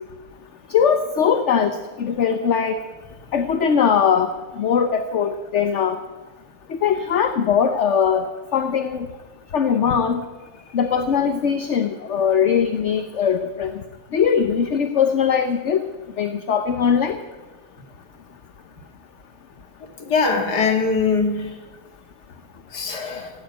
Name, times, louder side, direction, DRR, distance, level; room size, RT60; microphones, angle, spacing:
voice 1, 0.7-2.8 3.3-4.3 4.6-6.0 6.7-8.3 8.5-9.1 9.5-10.2 10.7-13.7 14.1-15.8 16.2-17.2, left 7 dB, 50° left, 8 dB, 1.0 m, -20 dB
voice 2, 20.0-21.5 22.7-23.3, left 4 dB, 75° left, 4 dB, 2.5 m, -21 dB
16.5 x 9.3 x 9.1 m, 1.3 s
omnidirectional pair, 1.8 m